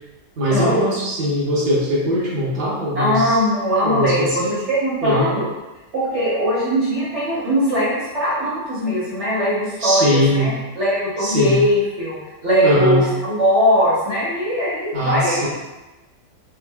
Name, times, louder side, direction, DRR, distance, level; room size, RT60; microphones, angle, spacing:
voice 1, 0.4-3.4 3.8-4.6 5.0-5.3 9.8-10.5 11.2-11.6 12.6-13.0 14.9-15.5, equal, 70° right, -8 dB, 0.5 m, -20 dB
voice 2, 2.9-5.5 5.9-10.5 10.8-15.5, equal, 55° right, -9 dB, 0.8 m, -20 dB
3.5 x 2.0 x 3.3 m, 1.1 s
omnidirectional pair, 2.0 m